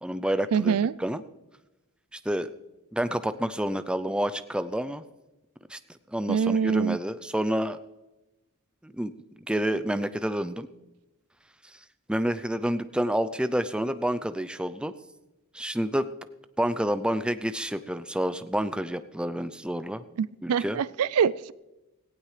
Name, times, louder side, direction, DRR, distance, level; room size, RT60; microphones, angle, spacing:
voice 1, 0.0-1.2 2.3-2.5 2.9-5.0 5.7-5.8 6.1-7.8 8.8-9.1 9.5-10.7 12.1-14.9 15.5-16.1 16.6-20.0 20.4-20.8, right 1 dB, 5° right, 12 dB, 0.4 m, -28 dB
voice 2, 0.5-0.9 6.3-7.0 20.2-21.5, right 7 dB, 80° right, 18 dB, 0.4 m, -25 dB
17.5 x 16.0 x 3.3 m, 1.0 s
head